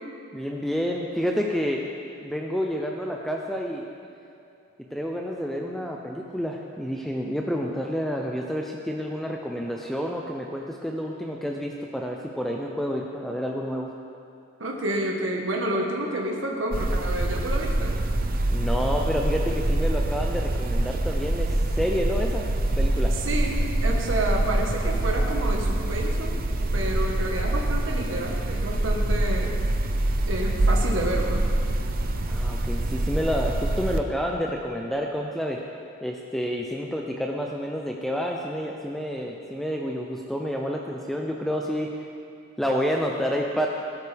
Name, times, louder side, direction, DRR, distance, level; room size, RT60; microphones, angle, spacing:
voice 1, 0.3-1.8 2.2-3.8 4.9-13.9 18.5-22.5 22.8-23.2 32.3-35.6 36.0-42.1 42.6-43.7, equal, ahead, 0 dB, 0.6 m, -29 dB
voice 2, 14.6-18.0 23.1-26.3 26.7-29.5 30.3-31.5, right 1 dB, 65° right, 0 dB, 1.4 m, -29 dB
sound 1, 16.7-34.0, right 1 dB, 45° right, 0.7 m, -25 dB
17.5 x 11.5 x 3.5 m, 2.6 s
head